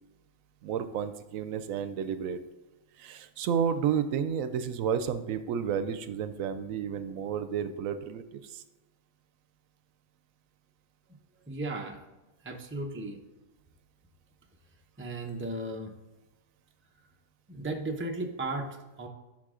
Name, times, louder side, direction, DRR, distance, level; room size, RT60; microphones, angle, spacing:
voice 1, 0.6-2.4 3.0-8.6, right 8 dB, 80° right, 11 dB, 1.0 m, -31 dB
voice 2, 11.5-12.0 12.4-13.2 15.0-15.9 17.5-19.1, right 2 dB, 10° right, 2 dB, 0.7 m, -35 dB
11.0 x 3.9 x 3.7 m, 1.1 s
omnidirectional pair, 1.4 m